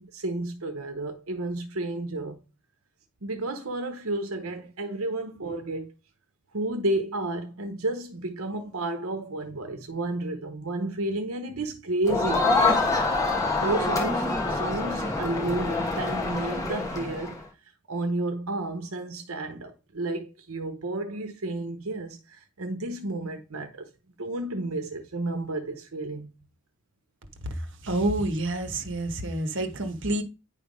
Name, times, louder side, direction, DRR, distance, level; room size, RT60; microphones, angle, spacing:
voice 1, 0.0-2.4 3.2-5.9 6.5-12.5 13.5-17.4 17.9-23.9 24.2-26.3, right 2 dB, 75° right, 0.9 m, -31 dB
Crowd, 12.1-17.4, left 3 dB, 15° left, 1.4 m, -26 dB
voice 2, 27.8-30.2, right 1 dB, 55° right, 1.2 m, -28 dB
10.0 x 3.4 x 5.2 m
head